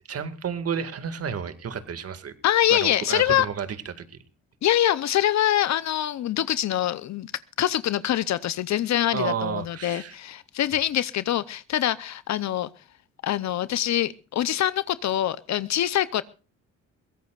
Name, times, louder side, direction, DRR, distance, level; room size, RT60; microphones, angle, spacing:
voice 1, 0.1-2.3 2.7-4.2 9.1-10.2, right 7 dB, 50° right, 10 dB, 2.1 m, -31 dB
voice 2, 2.4-3.5 4.6-7.3 7.6-12.7 13.2-16.2, left 12 dB, 65° left, 16 dB, 0.7 m, -24 dB
22.5 x 16.5 x 2.5 m, 0.34 s
cardioid pair, 90°, 30 cm